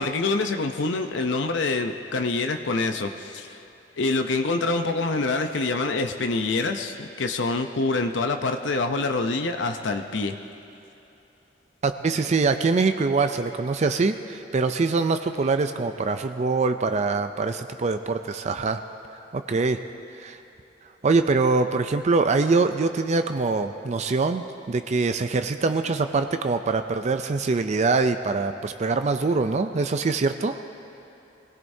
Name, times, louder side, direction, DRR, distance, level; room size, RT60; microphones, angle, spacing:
voice 1, 0.0-3.6 4.0-10.4, left 3 dB, 85° left, 6 dB, 0.7 m, -26 dB
voice 2, 11.8-18.8 19.3-19.8 20.2-20.4 21.0-30.6, right 4 dB, 40° right, 8 dB, 0.4 m, -24 dB
23.0 x 17.0 x 2.7 m, 3.0 s
head